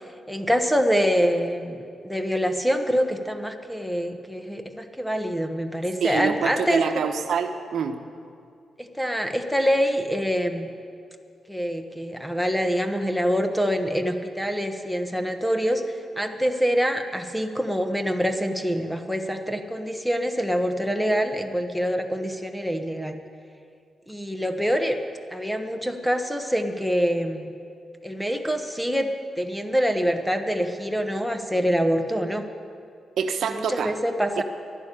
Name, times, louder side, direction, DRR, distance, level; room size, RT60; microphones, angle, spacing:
voice 1, 0.3-6.8 8.8-10.7 11.5-23.2 24.1-25.0 25.3-27.5 28.0-29.1 29.4-32.5 33.5-34.4, equal, ahead, 6 dB, 1.2 m, -25 dB
voice 2, 6.0-8.0 33.2-33.9 34.4-34.5, right 6 dB, 75° right, 6 dB, 1.0 m, -26 dB
11.5 x 11.5 x 10.0 m, 2.3 s
cardioid pair, 95°, 0 cm